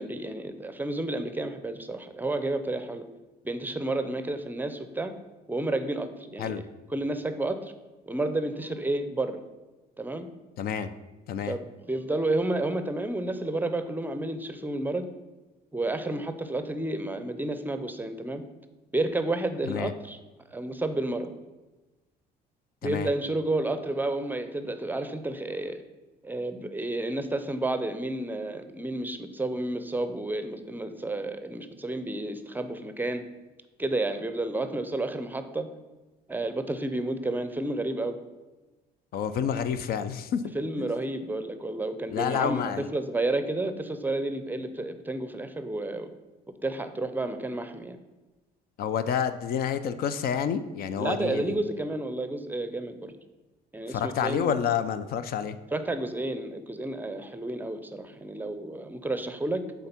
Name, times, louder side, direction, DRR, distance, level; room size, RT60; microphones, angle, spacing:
voice 1, 0.0-3.1 3.4-5.1 5.5-6.6 6.9-7.7 8.1-9.4 10.0-10.3 11.4-15.1 15.7-18.4 18.9-20.2 20.5-21.3 22.8-25.8 26.2-33.2 33.8-35.7 36.3-38.2 40.5-46.1 46.6-48.0 51.0-53.1 53.7-54.6 55.7-59.9, right 2 dB, 10° right, 9 dB, 0.5 m, -31 dB
voice 2, 10.6-10.9 11.3-11.6 19.6-19.9 22.8-23.1 39.1-40.9 42.1-42.9 48.8-51.6 53.9-55.6, left 8 dB, 65° left, 12 dB, 0.5 m, -29 dB
7.8 x 3.7 x 5.8 m, 1.2 s
cardioid pair, 110°, 17 cm